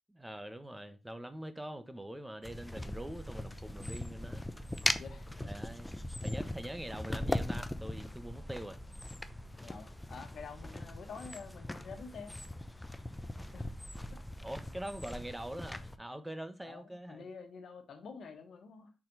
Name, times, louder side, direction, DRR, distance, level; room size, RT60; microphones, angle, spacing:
voice 1, 0.1-4.5 5.5-8.8 10.7-10.8 14.4-17.2, right 1 dB, 10° right, 1.1 m, -44 dB
sound 1, 2.4-16.0, left 1 dB, 15° left, 0.8 m, -40 dB
voice 2, 4.9-5.6 9.6-12.4 13.5-13.7 14.1-14.2 16.6-18.9, left 5 dB, 75° left, 1.4 m, -48 dB
6.1 x 4.3 x 5.3 m
cardioid pair, 55°, 0 cm